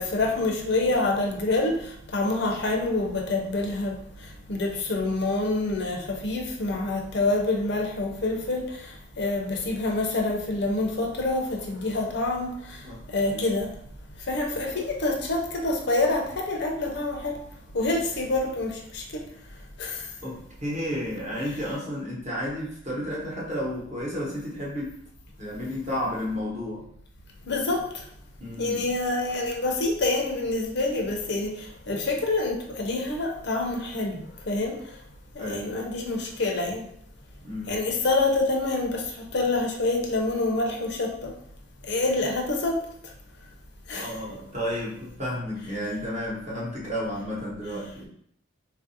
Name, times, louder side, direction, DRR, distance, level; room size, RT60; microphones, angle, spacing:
voice 1, 0.0-13.7 14.3-17.4 17.7-19.2 19.8-20.1 27.5-28.0 28.6-34.9 35.3-36.9 37.7-41.3 41.9-42.8 43.9-44.1, left 2 dB, 55° left, 1 dB, 0.6 m, -27 dB
voice 2, 12.8-13.5 20.2-24.9 25.4-26.9 28.4-28.9 35.4-35.9 37.4-37.8 43.9-48.1, equal, 35° right, -5 dB, 1.0 m, -32 dB
3.9 x 2.5 x 2.7 m, 0.68 s
head